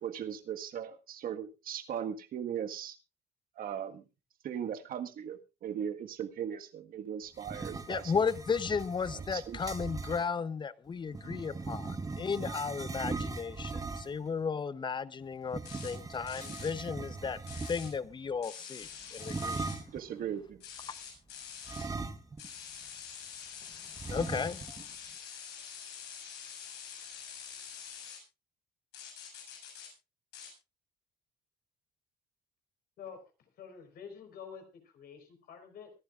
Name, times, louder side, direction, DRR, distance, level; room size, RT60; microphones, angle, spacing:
voice 1, 0.0-3.0 3.6-4.0 4.4-8.1 9.1-9.6 19.9-20.6, right 9 dB, 60° right, 1.6 m, -38 dB
sound 1, 7.3-10.3 11.1-14.3 15.5-18.1 19.2-20.0 21.7-22.6 22.9-23.0 24.0-24.8, right 3 dB, 20° right, 1.2 m, -39 dB
voice 2, 7.9-17.4 17.7-19.8 24.0-24.6, left 5 dB, 25° left, 0.8 m, -34 dB
sound 2, 15.6-15.9 16.3-16.7 17.5-17.9 18.4-19.8 20.6-21.9 22.4-28.2 28.9-29.9 30.3-30.5, left 7 dB, 85° left, 7.2 m, -46 dB
voice 3, 33.6-35.9, left 7 dB, 65° left, 4.5 m, -48 dB
24.0 x 11.5 x 2.5 m
cardioid pair, 110°, 17 cm